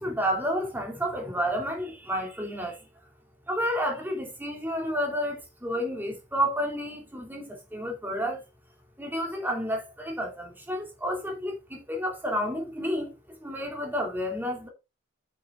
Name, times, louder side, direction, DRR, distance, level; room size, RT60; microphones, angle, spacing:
voice 1, 0.0-2.8 3.5-8.4 9.0-13.1 13.4-14.7, equal, 10° right, 2.9 m, -30 dB
8.5 x 6.7 x 3.9 m
head